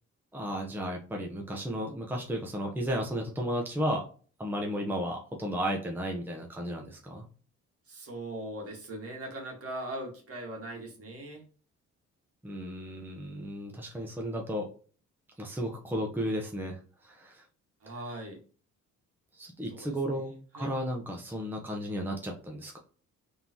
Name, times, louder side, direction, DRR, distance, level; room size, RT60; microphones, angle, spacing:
voice 1, 0.3-4.0 4.4-7.2 12.4-14.7 15.4-17.4 19.3-22.8, equal, 5° right, 0 dB, 1.0 m, -34 dB
voice 2, 7.9-11.4 17.8-18.4 19.7-20.7, right 1 dB, 50° right, 0 dB, 1.9 m, -40 dB
3.8 x 3.7 x 3.0 m, 0.40 s
cardioid pair, 90°, 30 cm